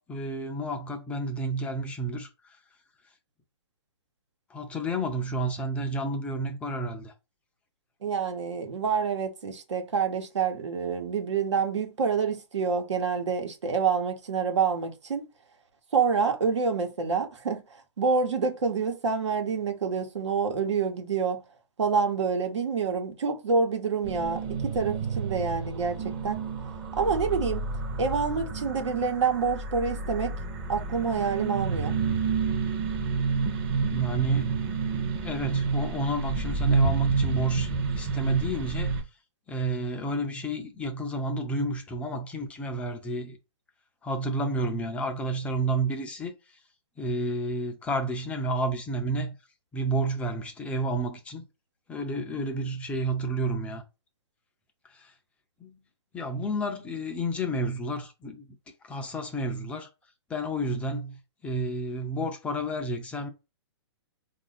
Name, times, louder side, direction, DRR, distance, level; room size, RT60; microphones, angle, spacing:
voice 1, 0.0-2.6 4.5-7.1 33.9-38.9 39.5-43.4 44.0-46.6 47.0-49.4 49.7-51.5 51.9-53.8 54.8-55.1 55.6-55.8 56.1-58.5 58.8-59.9 60.3-63.3, right 1 dB, 10° left, 0.3 m, -31 dB
voice 2, 8.0-15.3 15.9-17.6 18.0-21.4 21.8-26.4 26.9-27.7 28.0-30.4 30.7-32.0, right 5 dB, 90° right, 1.2 m, -27 dB
sound 1, 24.0-39.0, right 5 dB, 30° right, 0.7 m, -29 dB
4.0 x 2.5 x 3.9 m
hypercardioid pair, 150°, 15 cm